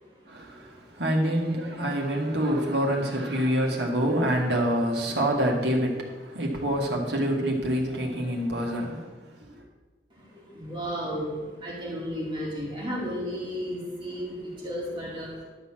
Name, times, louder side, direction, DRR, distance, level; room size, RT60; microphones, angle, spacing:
voice 1, 0.3-9.6, equal, 75° right, 0 dB, 1.9 m, -26 dB
voice 2, 10.5-11.3 11.6-14.4 14.6-15.3, equal, 30° right, -6 dB, 2.3 m, -33 dB
12.0 x 4.1 x 7.6 m, 1.3 s
head